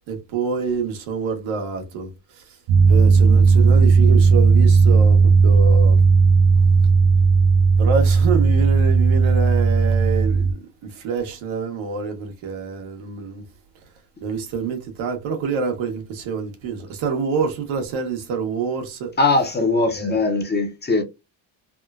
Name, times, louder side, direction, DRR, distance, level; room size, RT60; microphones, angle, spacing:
voice 1, 0.1-2.6 2.9-6.0 7.8-13.5 14.2-19.1 19.9-20.2, right 5 dB, 80° right, 1.3 m, -27 dB
sound 1, 2.7-10.5, right 5 dB, 60° right, 0.6 m, -15 dB
voice 2, 19.2-21.0, left 3 dB, 20° left, 0.6 m, -20 dB
3.6 x 2.2 x 2.4 m
cardioid pair, 125°, 47 cm